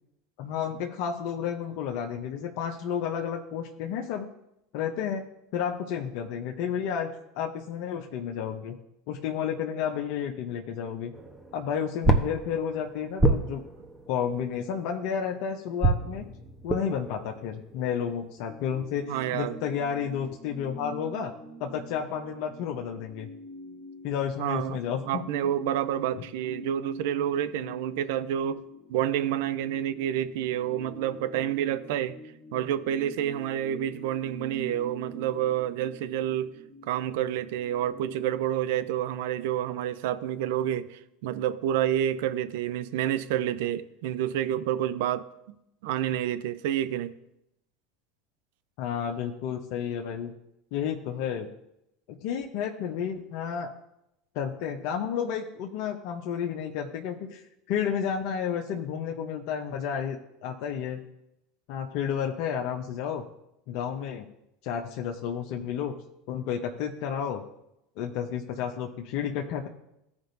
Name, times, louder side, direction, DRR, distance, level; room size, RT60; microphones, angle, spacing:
voice 1, 0.4-4.3 4.7-8.8 9.1-11.1 11.5-13.6 14.1-16.2 16.6-21.3 21.6-23.3 24.0-25.3 26.2-26.3 48.8-50.3 50.7-51.5 52.1-53.7 54.3-61.0 61.7-63.2 63.7-64.3 64.6-66.0 66.3-67.5 68.0-69.7, left 8 dB, 60° left, 2 dB, 0.8 m, -31 dB
sound 1, 11.1-15.2 15.8-18.8, right 2 dB, 5° right, 1.1 m, -30 dB
sound 2, 18.5-38.4, equal, 45° left, 1.5 m, -46 dB
voice 2, 19.1-19.6 24.4-24.8 25.1-28.6 28.9-32.2 32.5-36.5 36.9-45.3 45.8-47.1, right 11 dB, 70° right, 12 dB, 0.5 m, -29 dB
15.5 x 5.2 x 2.7 m, 0.85 s
hypercardioid pair, 80°, 0 cm